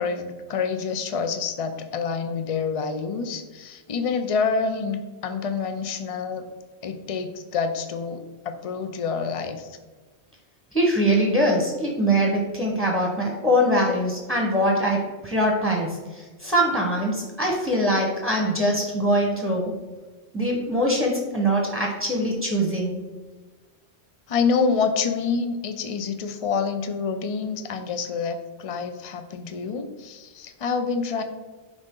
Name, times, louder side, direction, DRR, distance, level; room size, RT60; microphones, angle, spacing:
voice 1, 0.0-6.4 6.8-9.8 24.3-31.2, left 5 dB, 40° left, 8 dB, 0.6 m, -27 dB
voice 2, 10.7-19.7 20.3-23.0, equal, ahead, -2 dB, 1.0 m, -23 dB
9.9 x 3.9 x 3.7 m, 1.3 s
omnidirectional pair, 1.1 m